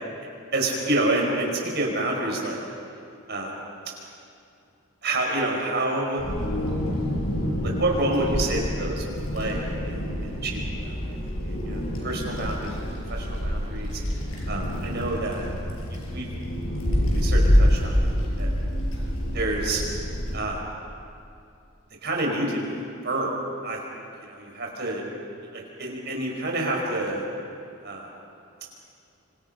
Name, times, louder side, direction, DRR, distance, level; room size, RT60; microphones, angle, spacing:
voice 1, 0.2-2.6 3.3-3.6 5.0-6.2 7.6-9.0 9.3-10.9 11.4-12.8 13.1-14.0 14.5-15.5 15.9-16.3 17.1-18.1 18.4-18.5 19.3-19.8 20.3-20.6 22.0-23.8 24.2-25.0 25.8-27.2 27.8-28.1, right 2 dB, 55° right, -1 dB, 5.4 m, -28 dB
Wind, 6.2-20.4, equal, 90° left, 6.2 m, -26 dB
27.5 x 25.5 x 5.3 m, 2.5 s
head